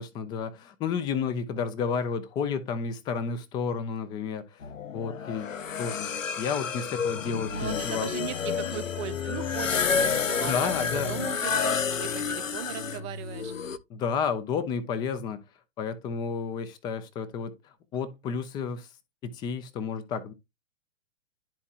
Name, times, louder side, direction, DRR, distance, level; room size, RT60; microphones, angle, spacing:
voice 1, 0.0-4.6 4.9-5.5 5.8-8.1 10.4-11.1 13.9-15.4 15.8-17.6 17.9-18.9 19.2-20.3, left 6 dB, 10° left, 0.5 m, -31 dB
sound 1, 4.6-13.8, left 6 dB, 80° left, 0.7 m, -30 dB
voice 2, 7.5-13.5, right 12 dB, 25° right, 0.7 m, -38 dB
11.5 x 4.4 x 2.4 m
figure-of-eight pair, 110°, 38 cm